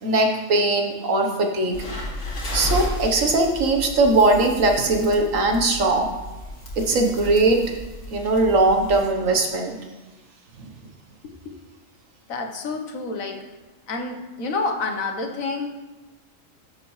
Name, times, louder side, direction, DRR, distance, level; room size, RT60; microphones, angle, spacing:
voice 1, 0.0-1.9 2.5-6.1 6.8-7.8 8.1-9.8 10.6-10.7, right 2 dB, 75° right, 3 dB, 1.5 m, -20 dB
sound 1, 1.7-9.0, left 1 dB, 65° left, 2.2 m, -33 dB
voice 2, 12.3-13.4 13.9-15.7, left 3 dB, 85° left, 3 dB, 1.5 m, -28 dB
13.0 x 6.7 x 3.2 m, 1.2 s
omnidirectional pair, 1.4 m